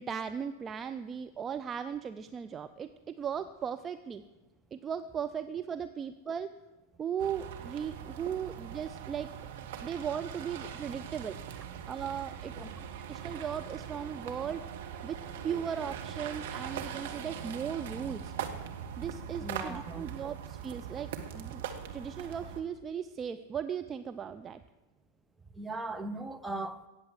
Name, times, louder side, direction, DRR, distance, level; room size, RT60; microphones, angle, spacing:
voice 1, 0.0-4.2 4.7-6.6 7.0-9.3 9.8-11.4 11.9-12.5 13.1-14.6 15.0-18.3 19.0-21.6 21.9-24.6, right 7 dB, 20° right, 9 dB, 0.5 m, -37 dB
sound 1, 7.2-22.6, right 8 dB, 55° right, 1.5 m, -41 dB
voice 2, 12.6-12.9 19.4-20.1 25.5-26.9, right 2 dB, 5° right, 6 dB, 0.9 m, -39 dB
17.0 x 7.7 x 7.9 m, 1.2 s
figure-of-eight pair, 90°, 0 cm